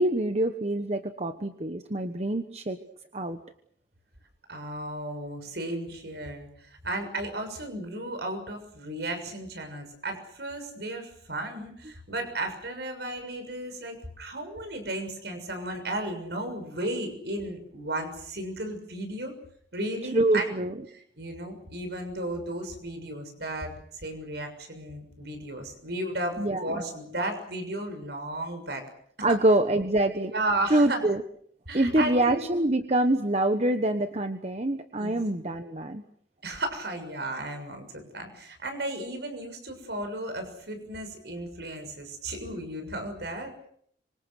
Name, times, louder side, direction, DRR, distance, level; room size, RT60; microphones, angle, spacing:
voice 1, 0.0-2.8 3.1-3.4 20.1-20.7 26.4-26.8 29.2-30.3 30.7-31.2 31.7-36.0, right 1 dB, 35° right, 7 dB, 1.2 m, -25 dB
voice 2, 4.5-19.3 19.7-20.5 21.2-28.8 29.3-29.4 30.1-31.0 31.7-32.4 35.0-35.2 36.4-43.5, right 1 dB, 65° right, 7 dB, 6.7 m, -34 dB
26.0 x 25.5 x 6.5 m, 0.68 s
head